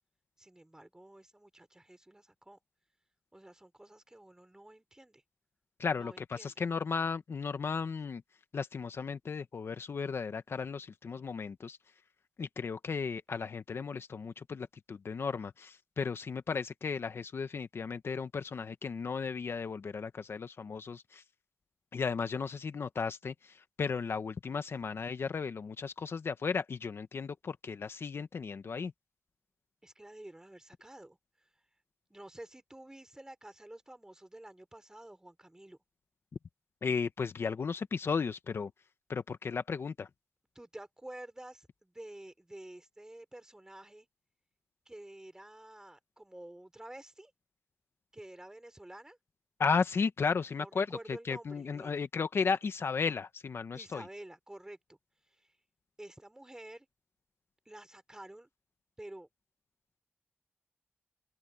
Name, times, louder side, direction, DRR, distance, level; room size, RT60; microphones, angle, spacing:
voice 1, 0.4-2.6 3.3-5.2 5.9-6.5 29.8-31.5 32.1-35.8 40.5-44.1 44.9-47.3 48.1-49.2 50.4-51.9 53.7-55.0 55.3-55.5 56.0-56.9 57.7-58.5 59.0-59.3, right 1 dB, 15° right, 3.9 m, -50 dB
voice 2, 5.8-8.2 8.5-11.8 12.4-21.2 21.9-28.9 36.8-38.7 39.1-40.1 49.6-54.0, left 5 dB, 65° left, 1.1 m, -35 dB
wide cardioid pair, 85°, 4 cm